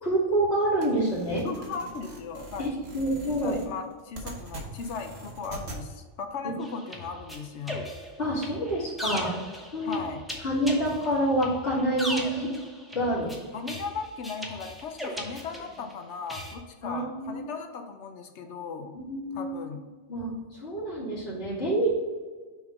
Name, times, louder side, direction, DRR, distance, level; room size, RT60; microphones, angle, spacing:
voice 1, 0.0-1.4 2.6-3.6 6.4-6.6 8.2-9.3 9.7-10.0 10.4-12.5 12.9-13.3 15.2-15.3 16.8-17.5 18.9-19.7 20.1-20.3 20.6-21.9, right 1 dB, 55° left, -8 dB, 1.7 m, -27 dB
sound 1, 0.8-5.8, right 2 dB, 60° right, 1.3 m, -42 dB
voice 2, 1.4-2.7 3.4-7.9 9.8-10.2 13.5-18.9 19.3-19.8, left 5 dB, 70° left, 6 dB, 0.9 m, -37 dB
sound 2, 6.6-15.9 16.3-16.5, equal, ahead, 0.8 m, -38 dB
6.4 x 3.6 x 4.8 m, 1.4 s
omnidirectional pair, 1.2 m